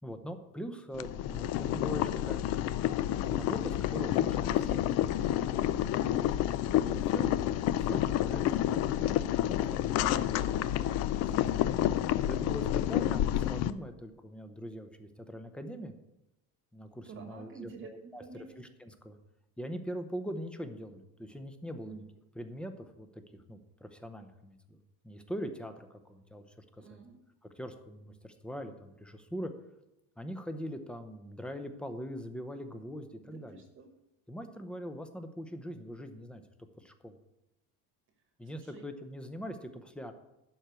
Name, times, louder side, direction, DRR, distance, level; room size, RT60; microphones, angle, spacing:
voice 1, 0.0-2.4 3.3-4.8 5.3-5.7 6.7-9.2 9.5-10.8 11.7-11.8 12.3-15.9 16.7-18.2 18.6-19.2 19.6-22.0 22.4-23.2 23.5-24.8 25.0-26.6 26.9-27.0 27.6-29.5 30.2-33.6 34.3-36.4 36.8-37.1 38.4-40.1, equal, 5° left, 7 dB, 0.6 m, -42 dB
Boiling, 0.9-13.7, left 12 dB, 45° left, 0.5 m, -29 dB
voice 2, 11.2-11.8 17.1-18.6 21.8-22.1 26.8-27.2 33.2-33.9 38.5-38.8, right 5 dB, 35° right, 6 dB, 1.2 m, -49 dB
11.5 x 4.5 x 8.1 m, 0.91 s
cardioid pair, 160°, 35 cm